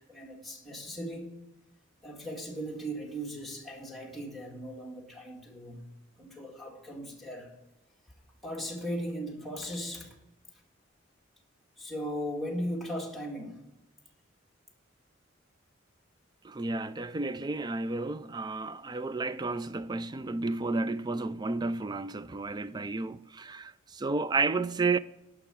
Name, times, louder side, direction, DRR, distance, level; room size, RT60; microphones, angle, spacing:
voice 1, 0.0-1.3 2.0-5.8 6.2-7.5 8.4-10.2 11.8-13.6, equal, ahead, 1.9 m, -38 dB
voice 2, 16.4-25.0, right 3 dB, 20° right, 0.3 m, -32 dB
11.5 x 5.9 x 8.8 m
head